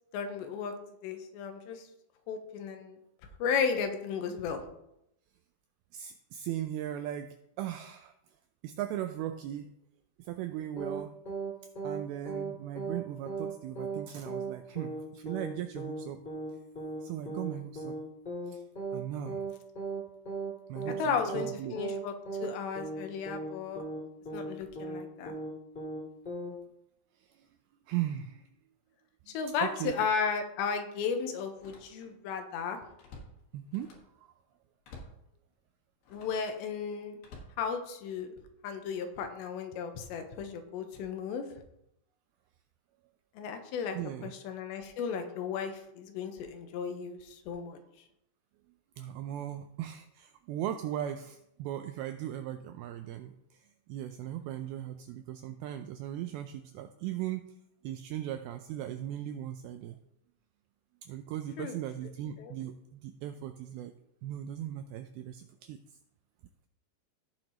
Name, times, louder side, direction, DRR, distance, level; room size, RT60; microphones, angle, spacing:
voice 1, 0.1-0.7 1.0-1.9 2.3-3.0 3.4-4.7 21.0-22.1 22.4-23.8 24.3-25.3 29.3-32.8 36.1-37.2 37.6-38.3 38.6-41.5 43.4-44.0 44.2-47.8 61.6-61.7 62.4-62.5, left 6 dB, 90° left, 6 dB, 3.2 m, -34 dB
voice 2, 5.9-8.1 8.6-9.7 10.2-11.2 11.8-16.2 17.0-17.9 18.5-18.6 18.9-19.5 20.7-21.8 27.2-27.5 27.9-28.5 29.3-29.4 29.6-30.0 33.5-34.3 43.9-44.3 49.0-57.5 57.8-60.0 61.0-63.9 64.2-65.8, right 11 dB, 90° right, 8 dB, 2.2 m, -38 dB
sound 1, 10.8-11.0 11.3-11.5 11.8-12.0 12.3-12.5 12.8-13.0 13.3-13.5 13.8-14.0 14.3-14.5 14.8-15.0 15.3-15.5 15.8-16.0 16.3-16.5 16.8-17.0 17.3-17.5 17.8-18.0 18.3-18.5 18.8-19.0 19.3-19.5 19.8-20.0 20.3-20.5 20.8-21.0 21.3-21.5 21.8-22.0 22.3-22.5 22.8-23.0 23.3-23.5 23.8-24.0 24.3-24.5 24.8-25.0 25.3-25.5 25.8-26.0 26.3-26.5, right 3 dB, 20° left, 1.7 m, -37 dB
Slam, 29.3-29.6 30.0-30.2 31.5-32.3 32.6-34.2 34.8-35.3 36.0-36.5 37.2-38.3 38.9-39.2, left 2 dB, 65° left, 3.2 m, -52 dB
16.5 x 6.5 x 2.9 m, 0.80 s
omnidirectional pair, 4.9 m